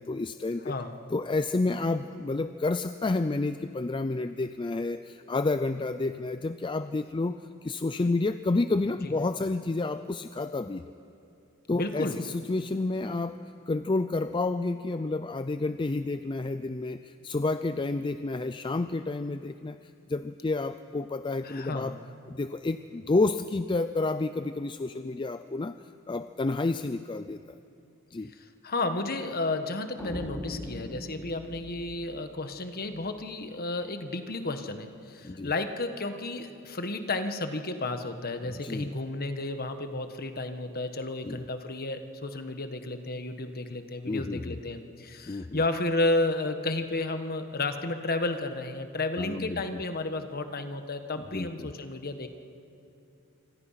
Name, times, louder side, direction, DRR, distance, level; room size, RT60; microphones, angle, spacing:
voice 1, 0.0-0.7 1.1-10.8 11.7-19.8 20.1-22.0 22.3-25.8 26.1-27.4 28.1-28.3 35.2-35.5 38.4-38.9 41.2-41.4 44.1-44.6 45.3-45.6 49.2-49.6 51.2-51.7, left 3 dB, 20° left, 11 dB, 0.4 m, -30 dB
voice 2, 0.6-1.0 8.0-8.1 11.7-12.2 21.4-22.0 28.6-52.3, left 2 dB, 45° left, 8 dB, 1.4 m, -32 dB
sound 1, 30.0-33.1, equal, 5° left, 3.4 m, -41 dB
26.5 x 24.5 x 5.8 m, 2.9 s
head